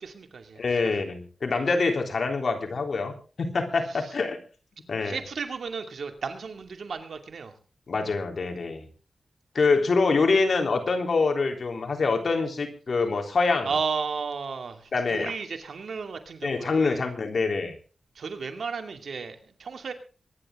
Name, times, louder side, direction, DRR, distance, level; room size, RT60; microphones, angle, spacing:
voice 1, 0.0-0.9 3.9-4.1 5.0-7.5 13.6-17.0 18.1-19.9, right 5 dB, 80° right, 6 dB, 2.5 m, -34 dB
voice 2, 0.6-3.1 3.4-4.4 4.9-5.2 7.9-8.9 9.6-13.7 14.9-15.3 16.4-17.7, left 4 dB, 70° left, 4 dB, 3.6 m, -25 dB
23.5 x 11.0 x 3.8 m, 0.37 s
cardioid pair, 55°, 0 cm